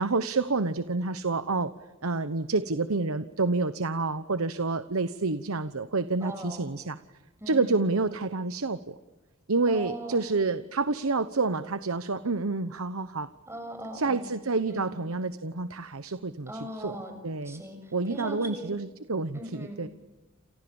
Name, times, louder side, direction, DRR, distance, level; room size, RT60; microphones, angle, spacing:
voice 1, 0.0-1.7 2.0-7.0 7.5-9.0 9.5-13.3 13.9-16.5 16.8-17.0 17.2-17.6 17.9-19.9, right 3 dB, 80° right, 12 dB, 1.0 m, -28 dB
voice 2, 6.2-6.7 7.4-7.8 9.7-10.3 13.5-14.3 14.7-14.9 16.5-17.2 17.4-18.7 19.3-19.8, right 1 dB, 10° right, 5 dB, 6.8 m, -39 dB
29.5 x 28.0 x 7.1 m, 1.1 s
head